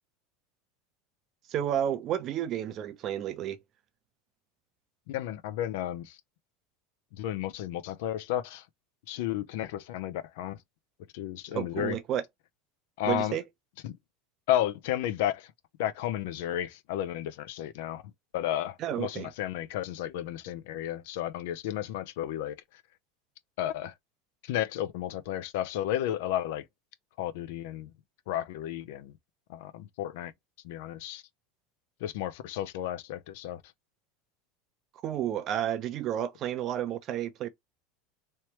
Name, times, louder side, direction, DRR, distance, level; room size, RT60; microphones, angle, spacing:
voice 1, 1.5-3.6 11.5-12.2 13.1-13.4 18.8-19.3 35.0-37.5, right 10 dB, 40° right, 0.6 m, -31 dB
voice 2, 5.1-6.2 7.1-8.6 9.1-10.6 11.1-12.0 13.0-13.4 13.8-14.0 14.5-15.5 15.8-18.0 18.3-22.6 23.6-23.9 24.4-26.6 27.2-27.9 28.3-29.1 29.5-30.3 30.6-31.2 32.0-33.6, left 12 dB, 75° left, 0.5 m, -32 dB
3.2 x 3.1 x 2.9 m
supercardioid pair, 135°, 0 cm